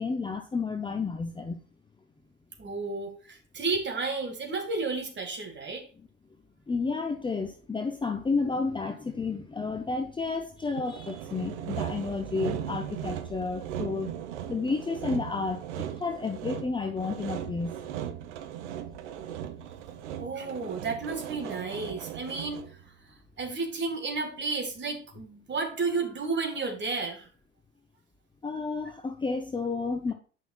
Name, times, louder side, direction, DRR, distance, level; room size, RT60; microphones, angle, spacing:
voice 1, 0.0-1.6 6.7-14.1 14.5-17.8 28.4-30.1, left 4 dB, 15° left, 5 dB, 0.7 m, -31 dB
voice 2, 2.6-5.8 20.2-22.6 23.4-27.3, right 4 dB, 30° right, 3 dB, 2.1 m, -32 dB
Sawing, 10.8-22.8, right 10 dB, 70° right, 0.9 m, -38 dB
9.2 x 5.6 x 2.4 m, 0.39 s
figure-of-eight pair, 65°, 36 cm